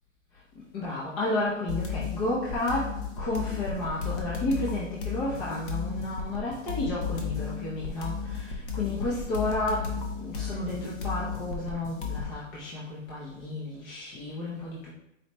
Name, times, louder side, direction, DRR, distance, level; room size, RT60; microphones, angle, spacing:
voice 1, 0.7-14.9, left 2 dB, 20° left, -6 dB, 0.6 m, -32 dB
sound 1, 1.7-12.3, left 5 dB, 45° left, 0.9 m, -34 dB
4.3 x 3.1 x 3.0 m, 0.82 s
hypercardioid pair, 130°, 38 cm